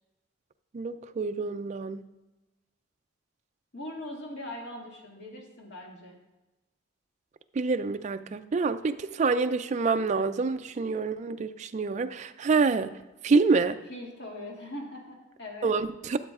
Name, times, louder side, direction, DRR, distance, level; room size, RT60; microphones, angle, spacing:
voice 1, 0.7-2.0 7.6-12.9 13.2-13.8 15.6-16.2, right 4 dB, 35° right, 10 dB, 0.3 m, -27 dB
voice 2, 3.7-6.2 13.9-15.7, left 1 dB, 60° left, -1 dB, 2.0 m, -41 dB
13.5 x 7.7 x 2.4 m, 1.0 s
head